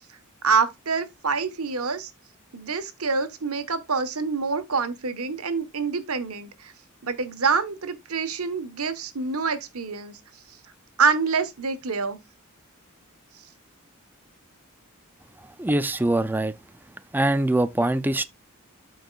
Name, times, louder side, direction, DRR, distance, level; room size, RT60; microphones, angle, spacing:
voice 1, 0.4-2.1 2.5-6.7 7.0-10.2 11.0-12.2, right 5 dB, 80° right, 1.3 m, -26 dB
voice 2, 15.6-16.5 17.1-18.2, right 1 dB, 10° right, 0.4 m, -23 dB
13.0 x 4.6 x 2.4 m
head